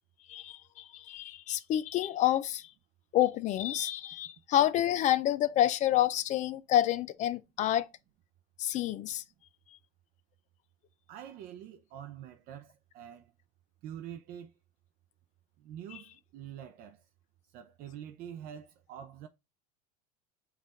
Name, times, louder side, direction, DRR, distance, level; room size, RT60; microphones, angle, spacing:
voice 1, 0.3-2.7 3.1-7.9 8.6-9.2 15.9-16.0, left 12 dB, 40° left, 0.4 m, -28 dB
voice 2, 11.1-13.3 13.8-14.5 15.6-17.0 17.5-19.3, right 10 dB, 55° right, 0.5 m, -45 dB
5.3 x 2.4 x 4.0 m
supercardioid pair, 110°, 18 cm